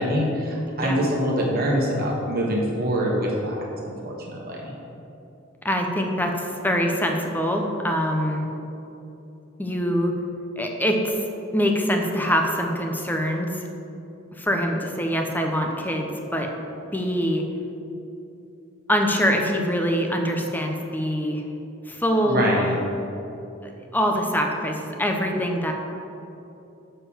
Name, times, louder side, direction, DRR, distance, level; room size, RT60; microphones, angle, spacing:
voice 1, 0.0-4.7 22.3-22.8, equal, 50° right, -2 dB, 1.4 m, -25 dB
voice 2, 5.6-8.5 9.6-10.1 10.6-11.2 11.5-13.5 14.4-16.5 16.9-17.4 18.9-21.4 21.9-22.7 23.6-25.7, equal, 10° left, 2 dB, 0.8 m, -24 dB
6.6 x 5.6 x 7.2 m, 2.9 s
head